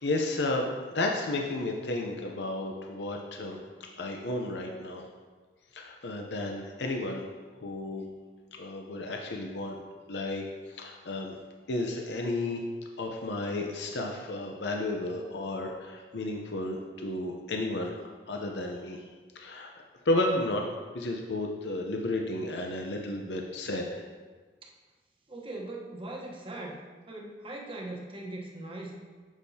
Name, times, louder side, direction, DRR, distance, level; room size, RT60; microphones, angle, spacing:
voice 1, 0.0-3.6 4.0-5.0 5.7-7.2 7.6-8.0 8.5-9.8 10.1-11.4 11.7-12.6 13.0-19.0 19.3-19.7 20.1-20.6 20.9-24.1, left 2 dB, 80° left, 1 dB, 0.7 m, -32 dB
voice 2, 25.3-26.8 27.1-29.0, right 2 dB, 30° right, -1 dB, 1.0 m, -40 dB
8.1 x 7.3 x 2.8 m, 1.4 s
head